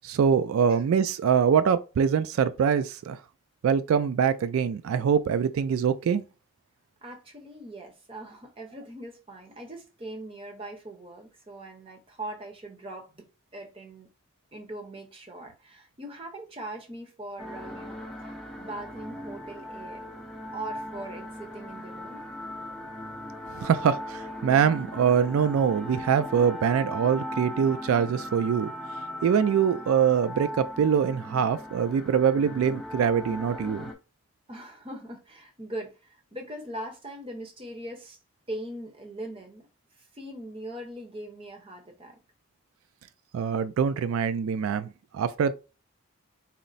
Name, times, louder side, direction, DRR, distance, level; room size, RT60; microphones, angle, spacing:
voice 1, 0.0-3.2 3.6-6.2 23.5-28.7 29.2-33.8 43.3-45.5, right 7 dB, 85° right, 0.3 m, -24 dB
voice 2, 7.0-14.1 14.5-20.1 20.5-22.2 34.5-38.2 38.5-39.7 40.0-42.2, right 1 dB, 25° right, 0.8 m, -41 dB
sound 1, 17.4-33.9, left 1 dB, ahead, 0.6 m, -38 dB
4.2 x 2.0 x 3.9 m
head